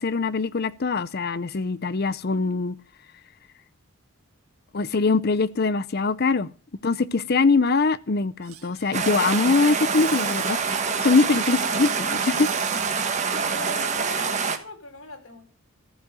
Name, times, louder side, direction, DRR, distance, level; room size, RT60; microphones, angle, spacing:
voice 1, 0.0-2.8 4.7-6.5 6.8-10.6 11.0-12.5, left 4 dB, 45° left, 0.6 m, -22 dB
Squeak / Cupboard open or close, 8.4-13.3, right 10 dB, 90° right, 1.7 m, -44 dB
sound 1, 8.9-14.6, right 5 dB, 35° right, 1.5 m, -26 dB
voice 2, 11.4-12.0 13.3-15.5, left 2 dB, 75° left, 4.3 m, -40 dB
14.0 x 7.6 x 7.6 m
head